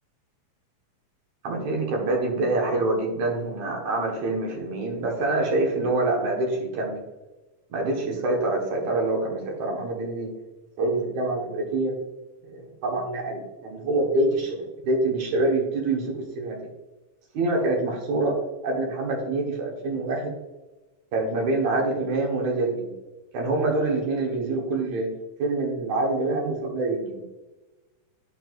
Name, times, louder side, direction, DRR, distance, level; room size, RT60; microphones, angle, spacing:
voice 1, 1.4-7.0 7.7-10.3 10.8-12.0 12.4-16.6 17.3-18.4 18.6-20.3 21.1-22.9 23.3-25.1 25.4-27.2, right 2 dB, 65° right, 0 dB, 2.6 m, -26 dB
10.5 x 4.6 x 2.5 m, 1.1 s
omnidirectional pair, 3.9 m